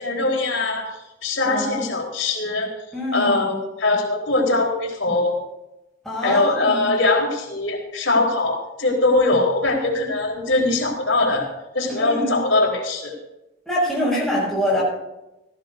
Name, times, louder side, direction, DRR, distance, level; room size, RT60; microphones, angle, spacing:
voice 1, 0.0-2.7 3.1-5.4 6.2-11.5 11.7-13.2, left 2 dB, 85° left, -1 dB, 4.1 m, -21 dB
voice 2, 1.5-1.9 2.9-3.4 6.0-6.9 11.9-12.4 13.6-14.8, equal, ahead, -7 dB, 6.3 m, -24 dB
19.0 x 15.5 x 2.7 m, 0.96 s
head